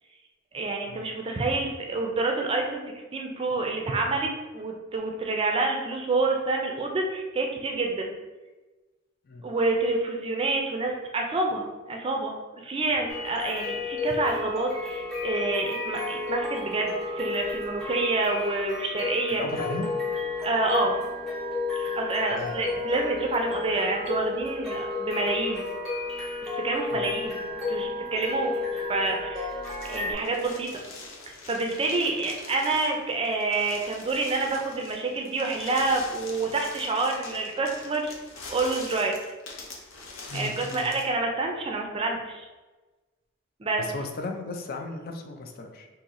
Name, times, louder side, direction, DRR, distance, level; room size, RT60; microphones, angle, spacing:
voice 1, 0.5-2.8 3.1-8.1 9.4-19.4 20.4-21.0 21.8-25.7 26.4-28.6 28.9-29.5 29.9-30.7 31.5-38.1 38.5-39.1 40.3-42.5 43.6-43.8, right 3 dB, 30° right, 1 dB, 0.4 m, -28 dB
sound 1, 13.1-30.1, left 3 dB, 5° left, 0.9 m, -32 dB
voice 2, 19.4-19.9 22.3-22.5 26.9-27.0 29.0-29.1 40.3-40.9 43.8-45.9, left 3 dB, 50° left, 4 dB, 0.4 m, -35 dB
sound 2, 29.6-41.1, left 3 dB, 85° left, 0.7 m, -44 dB
2.8 x 2.7 x 3.9 m, 1.2 s
head